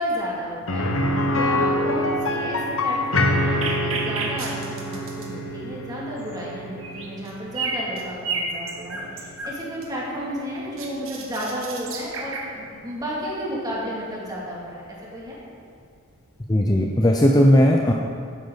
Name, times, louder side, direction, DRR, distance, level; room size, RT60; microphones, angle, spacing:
voice 1, 0.0-15.4, equal, 20° right, -5 dB, 2.5 m, -32 dB
sound 1, 0.7-10.4 10.8-10.9 13.3-13.4, left 1 dB, 70° left, 1.0 m, -26 dB
sound 2, 3.6-5.3 6.2-6.3 6.8-7.3 7.6-9.5 9.8-12.5, right 4 dB, 70° right, 1.6 m, -31 dB
voice 2, 16.5-17.9, equal, 20° left, 1 dB, 0.5 m, -17 dB
12.0 x 10.0 x 4.0 m, 2.3 s
head